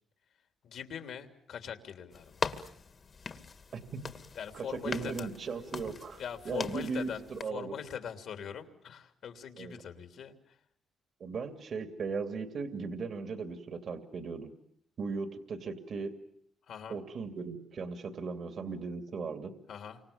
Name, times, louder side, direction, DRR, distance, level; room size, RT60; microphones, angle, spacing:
voice 1, 0.6-2.4 4.3-5.3 6.2-7.2 7.5-10.6 16.7-17.0 19.7-20.0, left 8 dB, 70° left, 7 dB, 3.2 m, -42 dB
sound 1, 2.1-7.4, left 5 dB, 40° left, 2.0 m, -41 dB
voice 2, 4.5-7.7 9.6-9.7 11.2-14.5 15.0-16.1 16.9-19.5, right 4 dB, 55° right, 8 dB, 2.5 m, -37 dB
29.5 x 25.5 x 7.2 m, 0.69 s
cardioid pair, 90°, 0 cm